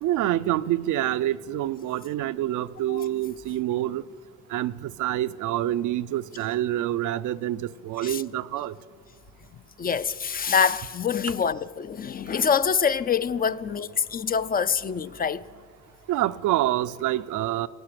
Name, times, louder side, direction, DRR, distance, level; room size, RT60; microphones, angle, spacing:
voice 1, 0.0-4.0 4.5-8.7 16.1-17.7, right 13 dB, 80° right, 0.5 m, -27 dB
voice 2, 9.8-15.4, left 6 dB, 30° left, 0.4 m, -25 dB
17.5 x 8.7 x 6.7 m
cardioid pair, 90°, 30 cm